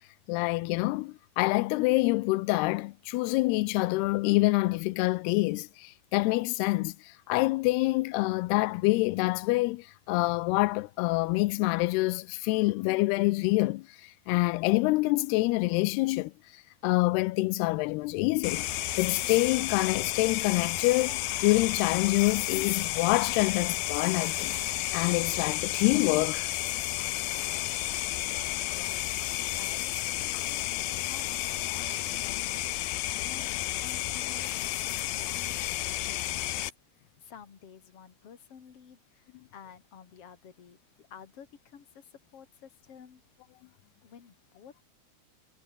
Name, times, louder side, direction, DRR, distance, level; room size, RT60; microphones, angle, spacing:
voice 1, 0.3-18.7 19.0-26.5, left 21 dB, 90° left, 2.7 m, -26 dB
sound 1, 18.4-36.7, left 15 dB, 75° left, 2.7 m, -32 dB
voice 2, 27.5-28.4 28.6-29.0 29.5-36.6 36.9-43.2 44.0-44.8, left 7 dB, 40° left, 3.3 m, -52 dB
omnidirectional pair, 4.5 m